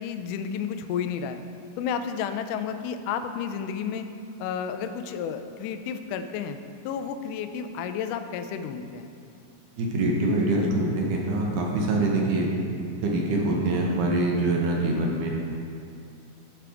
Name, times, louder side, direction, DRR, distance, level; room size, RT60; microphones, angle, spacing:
voice 1, 0.0-1.4 1.8-4.1 4.4-6.6 6.9-9.1, left 7 dB, 85° left, 8 dB, 1.8 m, -31 dB
voice 2, 9.8-12.5 13.0-15.3, right 2 dB, 70° right, -1 dB, 2.3 m, -24 dB
13.0 x 5.0 x 3.4 m, 2.5 s
omnidirectional pair, 4.1 m